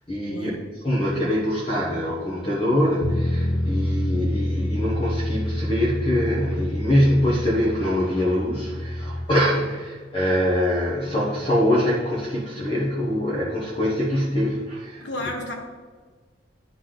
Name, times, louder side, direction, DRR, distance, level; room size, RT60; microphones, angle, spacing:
voice 1, 0.1-0.5 0.8-15.0, equal, 30° left, -6 dB, 1.2 m, -23 dB
Bass guitar, 3.0-9.3, left 1 dB, 90° left, 0.7 m, -27 dB
voice 2, 15.0-15.5, left 1 dB, 75° left, 2 dB, 1.3 m, -31 dB
10.0 x 4.2 x 3.9 m, 1.5 s
head